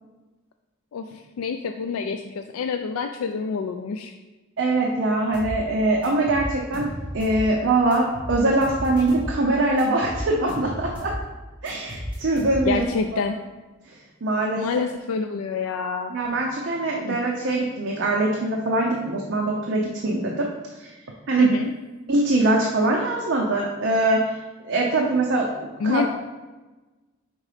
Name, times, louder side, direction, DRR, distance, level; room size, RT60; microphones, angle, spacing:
voice 1, 1.4-4.1 12.6-13.4 14.6-16.2 17.1-17.2 21.4-21.7 25.8-26.1, left 5 dB, 80° left, 6 dB, 0.3 m, -27 dB
voice 2, 4.6-11.1 11.6-13.2 14.2-14.7 16.1-20.5 20.8-20.9 21.3-21.5 22.1-24.3 24.7-26.1, right 2 dB, 55° right, -1 dB, 0.6 m, -23 dB
sound 1, 5.3-5.6 6.0-7.5 7.9-9.3 9.8-11.2 11.6-12.9, equal, 5° right, 1.8 m, -33 dB
5.3 x 3.8 x 4.9 m, 1.2 s
head